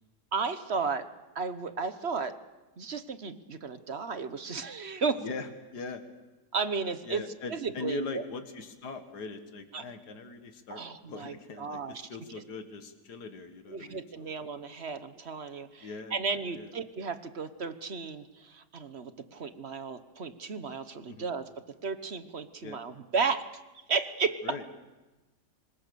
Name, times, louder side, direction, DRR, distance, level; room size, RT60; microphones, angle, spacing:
voice 1, 0.3-1.1 1.3-2.3 2.8-5.2 6.5-7.2 7.5-8.2 9.7-9.8 10.7-12.1 13.7-21.4 21.8-23.4 23.9-24.6, right 5 dB, 45° right, 11 dB, 1.2 m, -34 dB
voice 2, 5.2-6.0 7.0-10.8 11.1-14.3 15.8-16.2 16.5-16.7 21.1-21.3 22.6-22.8 24.4-24.7, left 4 dB, 70° left, 6 dB, 2.2 m, -40 dB
26.0 x 21.0 x 6.9 m, 1.1 s
omnidirectional pair, 1.8 m